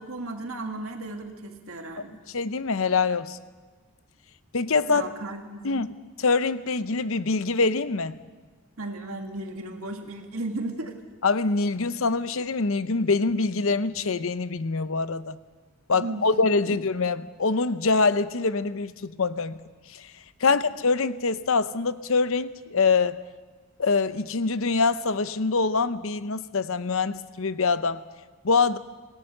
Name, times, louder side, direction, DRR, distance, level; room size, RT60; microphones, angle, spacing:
voice 1, 0.0-2.1 4.9-5.9 8.8-10.9 15.9-16.2 16.7-16.8 20.5-20.6, right 2 dB, 75° right, 4 dB, 2.2 m, -35 dB
voice 2, 2.3-3.4 4.5-5.1 5.6-8.1 11.2-15.4 15.9-19.6 19.9-20.1 20.4-23.2 23.8-28.0 28.4-28.8, left 4 dB, 65° left, 14 dB, 0.8 m, -24 dB
26.0 x 17.5 x 6.7 m, 1.4 s
head